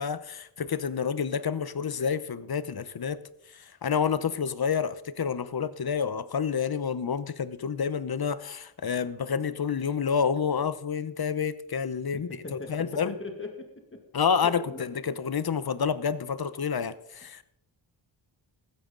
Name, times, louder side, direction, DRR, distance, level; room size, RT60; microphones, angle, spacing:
voice 1, 0.0-3.2 3.5-13.1 14.1-17.4, left 6 dB, 50° left, 15 dB, 0.9 m, -29 dB
voice 2, 12.1-14.0 14.7-14.8, left 3 dB, 25° left, 3 dB, 2.1 m, -40 dB
15.0 x 12.5 x 3.9 m, 0.75 s
wide cardioid pair, 80°, 48 cm